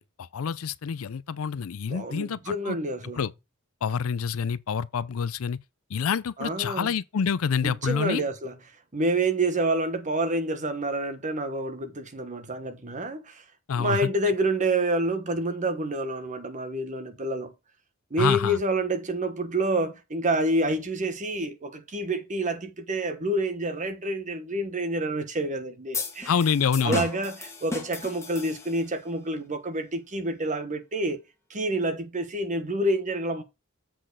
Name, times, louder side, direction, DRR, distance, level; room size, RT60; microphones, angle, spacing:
voice 1, 0.0-2.8 3.2-3.3 3.8-5.6 5.9-8.2 13.7-14.0 18.2-18.6 26.3-27.1, left 6 dB, 70° left, 0.4 m, -27 dB
voice 2, 1.9-3.3 6.4-6.9 7.6-8.6 8.9-13.4 13.8-17.5 18.1-26.3 26.8-31.2 31.5-33.4, right 1 dB, 35° right, 1.1 m, -28 dB
sound 1, 25.9-29.0, left 3 dB, 15° left, 1.6 m, -35 dB
7.6 x 4.3 x 4.7 m
head